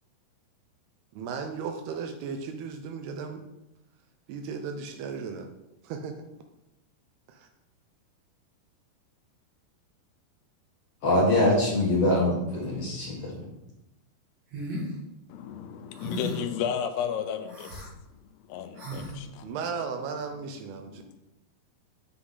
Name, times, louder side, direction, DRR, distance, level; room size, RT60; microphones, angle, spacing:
voice 1, 1.1-3.5 4.3-5.5 5.8-6.3 7.3-7.5 19.4-21.0, right 5 dB, 80° right, 5 dB, 2.5 m, -35 dB
voice 2, 11.0-13.2, left 1 dB, 55° left, -7 dB, 1.8 m, -23 dB
sound 1, 14.5-14.9 16.0-16.5 17.5-17.9 18.8-19.1, equal, 55° right, 2.2 m, -35 dB
voice 3, 15.3-17.9 18.5-19.5 21.0-21.1, left 8 dB, 85° left, 8 dB, 2.6 m, -33 dB
8.6 x 3.9 x 3.9 m, 0.92 s
omnidirectional pair, 4.8 m